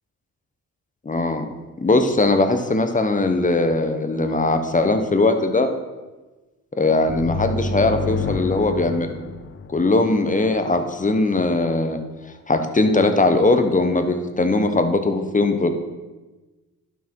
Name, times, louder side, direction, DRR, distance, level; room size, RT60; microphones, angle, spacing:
voice 1, 1.0-1.5 1.8-5.7 6.8-9.1 9.7-12.0 12.5-15.7, left 2 dB, 25° left, 7 dB, 1.0 m, -20 dB
sound 1, 7.1-10.6, left 3 dB, 40° left, 0.7 m, -29 dB
11.0 x 6.2 x 4.6 m, 1.2 s
cardioid pair, 85°, 34 cm